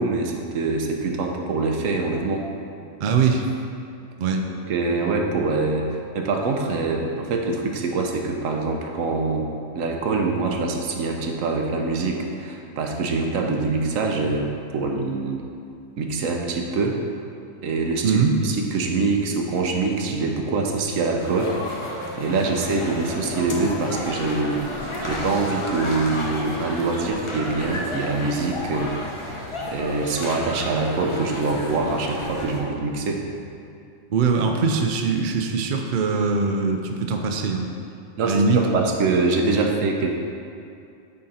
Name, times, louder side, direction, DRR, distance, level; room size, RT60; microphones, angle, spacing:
voice 1, 0.0-2.4 4.5-5.9 6.1-9.5 9.7-15.4 16.0-17.0 17.6-21.6 22.2-28.9 29.7-33.2 38.2-40.1, right 3 dB, 80° right, 2 dB, 1.1 m, -24 dB
voice 2, 3.0-3.5 4.2-4.5 18.0-18.4 34.1-37.7 38.3-38.6, right 4 dB, 55° right, 3 dB, 0.6 m, -21 dB
sound 1, 21.2-32.6, left 1 dB, 30° left, 0.7 m, -32 dB
9.4 x 3.9 x 4.2 m, 2.5 s
omnidirectional pair, 1.4 m